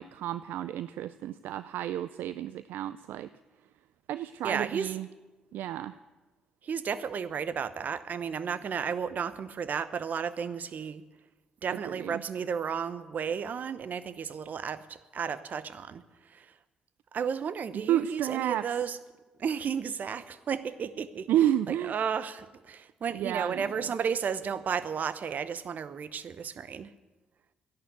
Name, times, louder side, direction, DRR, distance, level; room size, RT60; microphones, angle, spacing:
voice 1, 0.0-3.3 4.1-5.1 5.5-6.0 11.8-12.2 17.7-18.7 21.3-21.9 23.1-23.7, right 12 dB, 70° right, 0.4 m, -31 dB
voice 2, 4.4-4.9 6.6-11.0 11.6-16.5 17.1-19.0 19.4-21.3 21.7-26.9, right 7 dB, 55° right, 0.9 m, -33 dB
13.5 x 11.0 x 8.0 m
hypercardioid pair, 50°, 3 cm